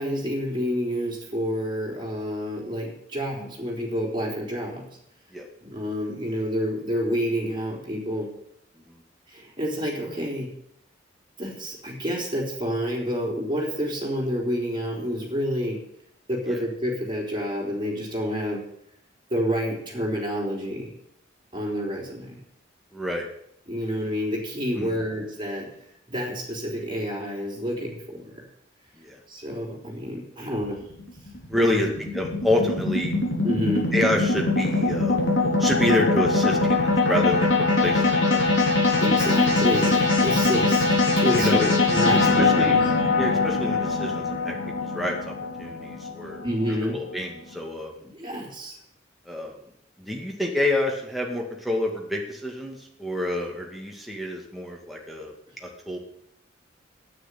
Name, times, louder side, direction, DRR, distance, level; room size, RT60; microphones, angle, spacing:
voice 1, 0.0-4.8 5.6-8.3 9.3-10.5 11.4-15.8 16.3-18.6 19.3-20.9 21.5-22.4 23.7-25.7 26.1-28.4 29.3-30.8 31.6-32.0 33.4-33.9 39.0-40.9 41.2-42.8 46.4-47.0 48.0-48.8, equal, 25° right, -2 dB, 3.8 m, -29 dB
voice 2, 22.9-23.2 24.7-25.0 29.0-29.2 31.5-33.2 33.9-35.2 35.6-37.5 37.8-39.0 41.3-41.7 42.1-42.8 43.1-45.3 45.6-46.4 46.8-47.9 49.3-49.6 50.0-55.3 55.6-56.0, left 1 dB, ahead, -1 dB, 2.2 m, -28 dB
sound 1, 30.6-47.0, left 3 dB, 70° left, 3.8 m, -22 dB
9.7 x 9.4 x 8.4 m, 0.73 s
head